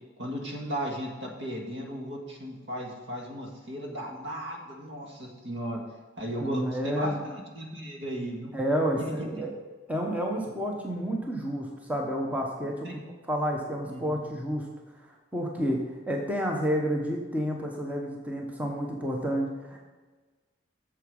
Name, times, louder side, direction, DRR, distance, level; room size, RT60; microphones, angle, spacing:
voice 1, 0.2-5.8 6.2-8.5 9.0-9.3 12.8-12.9 13.9-14.2, equal, 65° right, 0 dB, 1.9 m, -36 dB
voice 2, 6.4-7.2 8.5-9.5 9.9-12.9 13.3-14.7 15.3-19.8, equal, 10° right, 0 dB, 1.0 m, -30 dB
8.0 x 7.1 x 5.3 m, 1.3 s
head